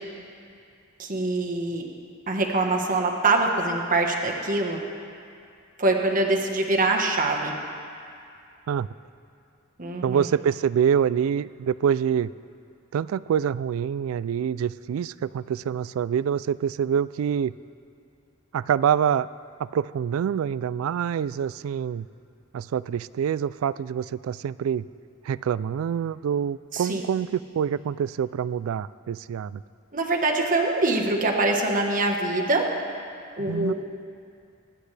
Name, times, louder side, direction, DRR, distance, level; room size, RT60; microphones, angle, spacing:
voice 1, 1.0-1.8 2.3-4.8 5.8-7.5 9.8-10.3 26.7-27.0 29.9-32.6 33.4-33.7, right 2 dB, 40° right, 1 dB, 1.3 m, -24 dB
voice 2, 10.0-12.3 12.9-17.5 18.5-19.3 19.6-22.1 22.5-24.9 25.2-29.6 33.4-33.7, right 8 dB, 75° right, 17 dB, 0.3 m, -26 dB
24.5 x 10.5 x 3.3 m, 2.4 s
head